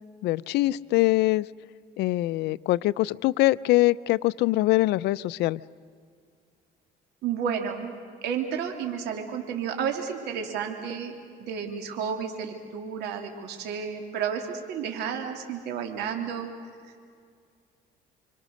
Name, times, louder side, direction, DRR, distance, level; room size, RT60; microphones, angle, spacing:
voice 1, 0.2-1.5 2.0-5.6, left 18 dB, 80° left, 19 dB, 0.5 m, -23 dB
voice 2, 7.2-7.9 8.2-11.1 11.4-16.5, right 7 dB, 80° right, 4 dB, 3.0 m, -31 dB
27.0 x 25.0 x 6.5 m, 2.1 s
cardioid pair, 110°, 17 cm